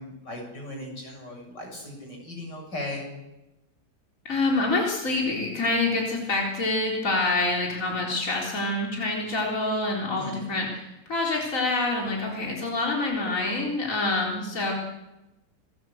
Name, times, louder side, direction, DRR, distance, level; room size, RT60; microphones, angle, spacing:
voice 1, 0.0-3.1 10.1-10.4, left 1 dB, 80° left, 1 dB, 8.0 m, -37 dB
voice 2, 4.2-14.7, left 2 dB, 50° left, -2 dB, 4.4 m, -26 dB
27.5 x 19.5 x 8.0 m, 0.98 s
omnidirectional pair, 1.8 m